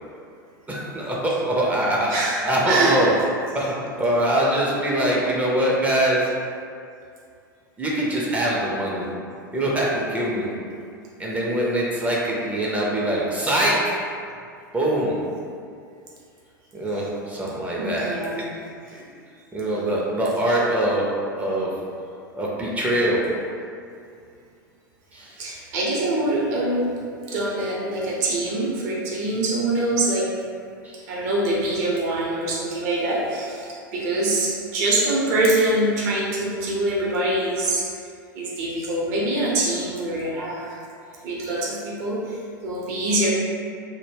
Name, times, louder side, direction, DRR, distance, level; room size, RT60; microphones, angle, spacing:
voice 1, 0.7-2.1 2.4-3.1 3.5-6.3 7.8-9.1 9.5-10.5 11.2-13.9 14.7-15.2 16.7-18.1 18.9-19.0 19.5-21.0 21.4-21.7 22.3-23.2 25.1-25.4 30.8-31.0, right 1 dB, 15° right, -5 dB, 0.4 m, -23 dB
voice 2, 2.1-3.2 17.8-18.6 20.5-20.6 25.4-26.9 27.3-30.3 31.1-37.9 38.3-40.8 41.2-43.3, right 2 dB, 50° right, -5 dB, 0.7 m, -24 dB
2.1 x 2.1 x 3.2 m, 2.4 s
figure-of-eight pair, 90°, 11 cm